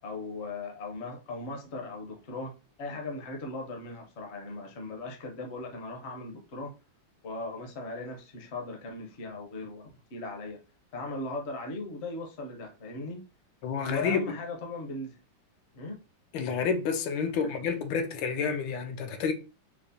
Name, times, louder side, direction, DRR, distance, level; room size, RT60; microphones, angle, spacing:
voice 1, 0.0-6.7 7.2-10.6 10.9-13.2 13.9-15.2 15.7-16.0 17.4-17.5, left 2 dB, 55° left, 0.8 m, -38 dB
voice 2, 13.6-14.2 16.3-19.3, left 6 dB, 80° left, 1.3 m, -29 dB
4.8 x 2.1 x 2.6 m
omnidirectional pair, 2.1 m